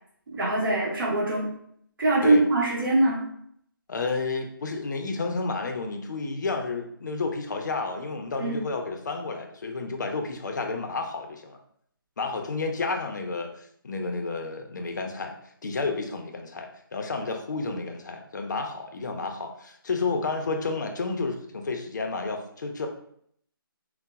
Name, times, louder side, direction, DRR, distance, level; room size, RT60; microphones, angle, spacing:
voice 1, 0.3-1.5 2.0-3.2 8.4-8.6, right 2 dB, 65° right, -4 dB, 1.1 m, -23 dB
voice 2, 3.9-11.6 12.2-15.3 15.6-22.9, left 3 dB, 50° left, 4 dB, 0.5 m, -31 dB
3.9 x 2.0 x 2.3 m, 0.67 s
hypercardioid pair, 170°, 12 cm